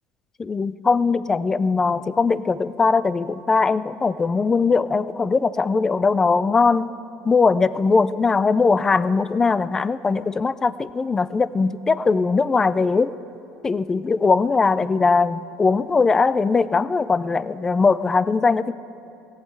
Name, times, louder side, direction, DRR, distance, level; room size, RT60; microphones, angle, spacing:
voice 1, 0.4-6.9 7.2-13.1 13.6-18.7, left 4 dB, 20° left, 16 dB, 0.4 m, -20 dB
16.5 x 8.1 x 7.7 m, 2.7 s
cardioid pair, 130°, 3 cm